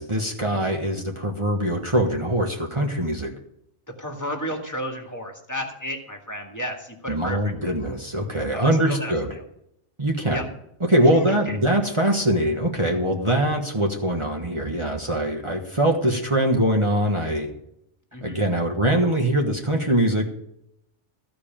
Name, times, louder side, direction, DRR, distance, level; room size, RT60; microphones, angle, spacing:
voice 1, 0.0-3.3 7.1-9.3 10.0-10.5 10.8-17.5 18.2-20.4, right 1 dB, 25° right, 0 dB, 1.5 m, -22 dB
voice 2, 4.0-7.7 8.5-9.4 10.3-10.5 11.0-11.6 18.1-18.4, equal, 15° left, 2 dB, 2.0 m, -33 dB
15.0 x 5.2 x 8.8 m, 0.77 s
omnidirectional pair, 1.2 m